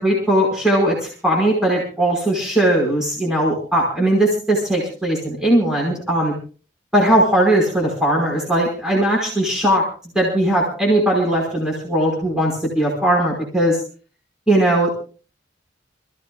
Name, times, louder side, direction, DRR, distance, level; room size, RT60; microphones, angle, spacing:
voice 1, 0.0-6.3 6.9-9.8 10.1-13.8 14.5-14.9, right 1 dB, 5° right, -2 dB, 5.2 m, -18 dB
28.5 x 16.0 x 2.4 m, 0.38 s
head